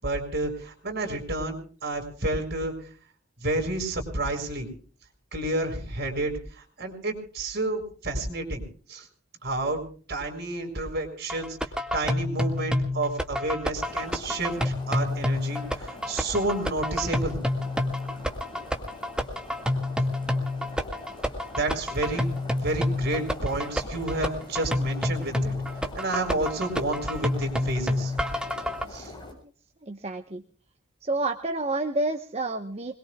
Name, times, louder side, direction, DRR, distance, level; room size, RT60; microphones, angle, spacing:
voice 1, 0.0-2.7 3.4-4.7 5.3-8.6 8.9-9.1 9.4-9.8 10.1-11.6 11.9-17.4 21.5-22.3 22.6-25.5 25.9-28.1 28.9-29.1, right 2 dB, 50° right, 4 dB, 6.3 m, -30 dB
sound 1, 11.3-28.8, left 1 dB, 5° right, 1.9 m, -28 dB
sound 2, 13.7-29.3, left 2 dB, 20° left, 6.8 m, -44 dB
voice 2, 29.8-30.4 31.0-32.9, right 2 dB, 30° right, 5 dB, 1.1 m, -29 dB
26.5 x 22.0 x 2.4 m, 0.43 s
head